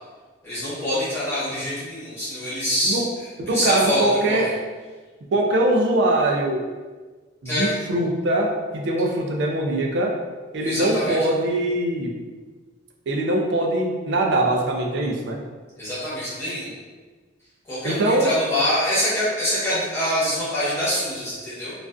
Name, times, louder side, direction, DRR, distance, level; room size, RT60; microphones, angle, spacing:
voice 1, 0.4-4.5 7.4-7.7 10.6-11.2 15.8-16.7 17.6-21.7, equal, 10° left, -12 dB, 1.0 m, -25 dB
voice 2, 3.4-4.5 5.3-6.6 7.4-10.2 10.5-12.1 13.1-15.4 17.8-18.3, right 1 dB, 60° right, 1 dB, 0.3 m, -22 dB
2.4 x 2.3 x 2.2 m, 1.4 s
head